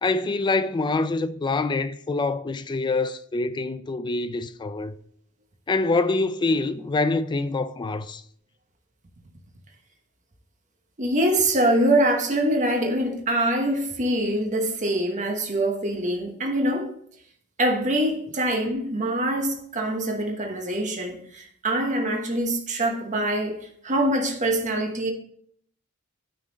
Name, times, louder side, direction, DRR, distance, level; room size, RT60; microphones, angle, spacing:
voice 1, 0.0-4.9 5.7-8.2, left 3 dB, 20° left, 0.3 m, -25 dB
voice 2, 11.0-16.9 17.6-25.1, right 1 dB, 35° right, 1.0 m, -24 dB
9.2 x 3.8 x 4.0 m
head